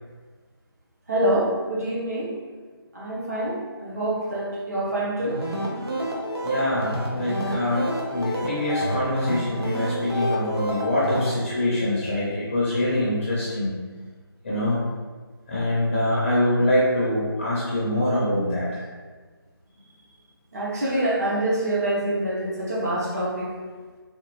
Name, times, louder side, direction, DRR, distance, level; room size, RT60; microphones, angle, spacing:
voice 1, 1.1-2.3 2.9-5.4 14.5-14.6 20.5-23.5, right 1 dB, 40° right, -6 dB, 0.9 m, -26 dB
sound 1, 5.2-11.3, equal, 85° right, 0.9 m, -29 dB
voice 2, 6.4-13.7 14.4-14.8 15.5-18.8, left 1 dB, 25° left, -8 dB, 0.5 m, -24 dB
3.7 x 2.2 x 2.9 m, 1.4 s
figure-of-eight pair, 170°, 13 cm